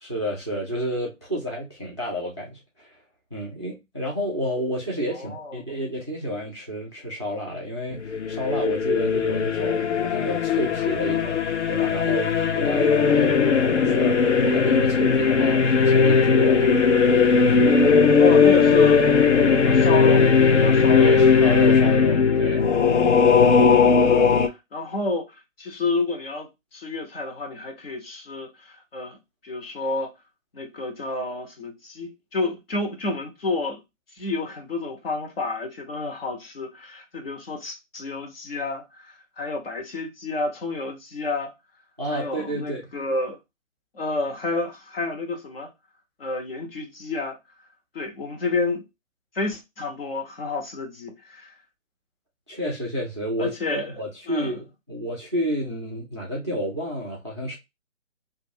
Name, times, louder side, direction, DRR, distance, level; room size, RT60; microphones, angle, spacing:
voice 1, 0.0-2.9 3.3-13.3 13.6-16.9 21.0-22.6 42.0-42.9 52.5-57.6, equal, 25° right, 0.4 m, -30 dB
voice 2, 5.1-5.6 13.0-13.4 18.2-19.2 19.6-21.2 24.0-24.3 24.7-29.2 29.4-30.1 30.5-33.8 34.1-41.5 42.1-43.4 43.9-45.7 46.2-47.4 47.9-48.8 49.3-51.5 53.4-53.9 54.3-54.5, left 3 dB, 45° left, 1.0 m, -30 dB
sound 1, 8.1-24.5, left 5 dB, 65° left, 0.6 m, -18 dB
2.6 x 2.5 x 2.7 m
figure-of-eight pair, 145°, 39 cm